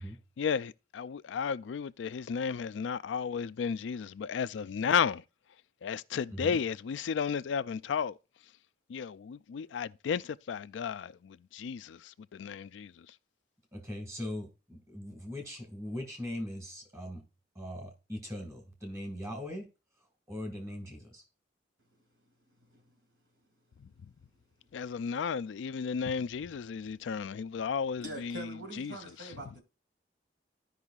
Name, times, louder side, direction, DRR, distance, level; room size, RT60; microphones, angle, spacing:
voice 1, 0.4-5.2 5.8-8.2 8.9-13.1 23.8-23.9 24.7-29.0 29.2-29.3, left 6 dB, 85° left, 0.4 m, -33 dB
voice 2, 13.7-17.2 17.6-19.7 20.3-21.2, left 1 dB, 15° right, 1.9 m, -40 dB
voice 3, 28.0-29.6, right 1 dB, 65° right, 2.1 m, -43 dB
15.0 x 5.5 x 2.4 m
head